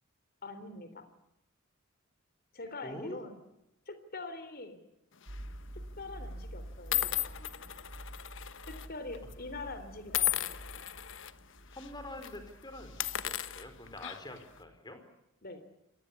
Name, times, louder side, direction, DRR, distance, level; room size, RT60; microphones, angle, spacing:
voice 1, 0.4-1.1 2.5-3.3 3.9-4.8 6.0-7.7 8.6-10.9 15.4-15.6, left 2 dB, 45° left, 11 dB, 3.5 m, -44 dB
voice 2, 2.8-3.2 11.7-15.0, left 1 dB, 20° left, 7 dB, 4.4 m, -45 dB
sound 1, 5.2-5.5 6.3-6.4 6.9-8.9 9.1-9.3 10.1-11.3 11.7-11.9 12.2-12.4 12.9-14.4, left 13 dB, 60° left, 1.2 m, -35 dB
sound 2, 5.3-14.3 14.5-14.8, right 1 dB, 60° right, 2.1 m, -48 dB
27.0 x 19.0 x 8.4 m, 0.86 s
head